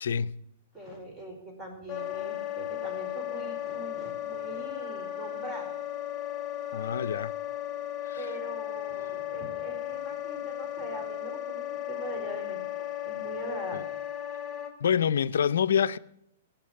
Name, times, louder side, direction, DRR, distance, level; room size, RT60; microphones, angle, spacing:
voice 1, 0.0-0.4 6.7-7.3 8.1-8.2 13.7-13.8 14.8-16.0, left 8 dB, 75° left, 0.5 m, -26 dB
voice 2, 0.7-5.7 8.2-13.8, right 1 dB, 15° right, 4.5 m, -42 dB
Wind instrument woodwind instrument, 1.9-14.7, left 12 dB, 20° left, 2.6 m, -35 dB
16.0 x 6.0 x 9.6 m
hypercardioid pair, 125°, 0 cm